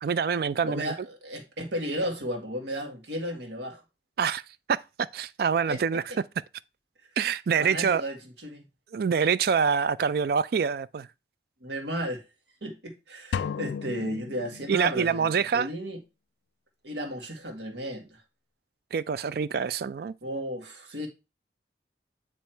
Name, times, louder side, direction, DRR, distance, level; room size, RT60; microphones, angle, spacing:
voice 1, 0.0-0.9 4.2-4.4 4.7-4.8 5.1-6.0 7.2-8.0 8.9-11.1 14.7-15.7 18.9-20.1, right 6 dB, 55° right, 0.3 m, -25 dB
voice 2, 0.6-3.8 5.7-5.8 6.1-6.2 7.6-8.6 11.6-12.2 12.6-16.0 16.8-18.2 20.2-21.1, equal, 80° right, 1.7 m, -34 dB
sound 1, 13.3-15.1, left 6 dB, 75° left, 0.3 m, -34 dB
9.1 x 3.1 x 4.4 m
head